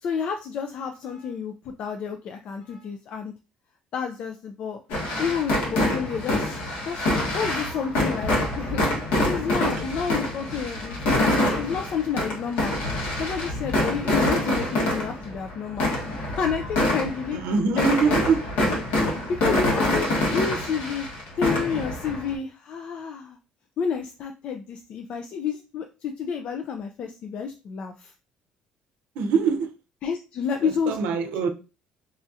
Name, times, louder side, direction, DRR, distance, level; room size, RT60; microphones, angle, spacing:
voice 1, 0.0-3.3 3.9-4.8 5.2-6.6 6.9-8.9 9.2-12.7 13.2-16.1 16.4-17.4 17.8-18.2 19.4-20.1 20.3-21.1 21.4-23.4 23.8-28.1 30.0-31.0, left 6 dB, 45° left, 0.3 m, -30 dB
Content warning, 4.9-22.3, left 1 dB, 80° left, 1.4 m, -26 dB
voice 2, 17.3-18.4 29.1-29.7 30.6-31.5, right 5 dB, 80° right, 0.6 m, -23 dB
4.2 x 2.4 x 2.6 m
cardioid pair, 170°, 3 cm